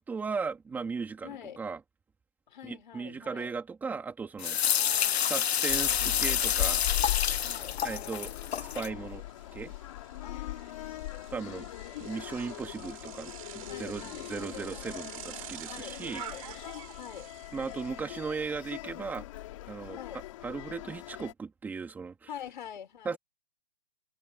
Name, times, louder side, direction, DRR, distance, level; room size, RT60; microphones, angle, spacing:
voice 1, 0.0-1.8 2.6-4.6 5.3-6.8 7.8-9.2 9.5-9.7 11.3-11.7 12.0-16.2 17.5-19.3 19.7-22.3 23.0-23.2, right 5 dB, 5° right, 3.3 m, -37 dB
voice 2, 1.2-1.6 2.5-3.5 4.8-5.3 7.4-8.2 10.2-12.3 13.7-14.9 15.7-16.5 17.0-17.3 19.9-20.2 22.3-23.2, left 9 dB, 50° left, 4.9 m, -46 dB
sound 1, 4.4-8.9, left 9 dB, 80° left, 0.8 m, -28 dB
Bicycle, 4.9-5.0 5.4-19.2, right 14 dB, 35° right, 6.7 m, -49 dB
sound 2, 5.7-21.3, left 16 dB, 30° left, 3.7 m, -40 dB
hypercardioid pair, 170°, 31 cm